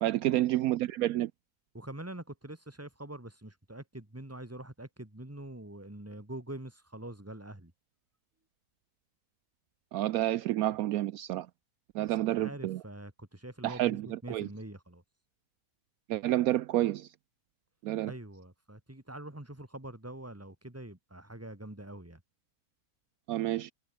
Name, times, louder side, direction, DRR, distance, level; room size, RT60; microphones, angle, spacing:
voice 1, 0.0-1.3 9.9-11.5 11.9-12.8 13.6-14.5 16.1-17.1 17.8-18.1 23.3-23.7, right 14 dB, 75° right, 1.0 m, -29 dB
voice 2, 1.7-7.7 12.1-15.0 18.0-22.2, right 1 dB, 10° right, 2.4 m, -45 dB
omnidirectional pair, 1.6 m